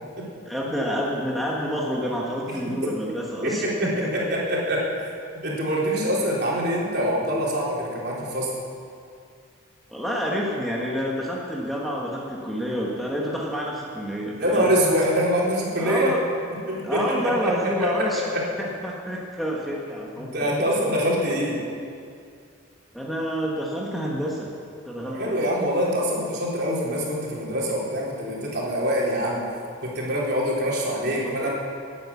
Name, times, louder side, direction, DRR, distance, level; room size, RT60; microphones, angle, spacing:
voice 1, 0.4-4.3 9.9-14.7 15.8-16.2 16.8-20.9 22.9-24.5 24.8-25.4 31.2-31.5, equal, ahead, -4 dB, 1.4 m, -29 dB
voice 2, 3.4-5.1 5.4-8.5 14.4-16.1 16.7-17.9 18.3-18.4 20.2-21.6 25.1-29.4 29.8-31.5, equal, 50° right, -5 dB, 3.9 m, -24 dB
18.5 x 9.3 x 7.1 m, 2.4 s
head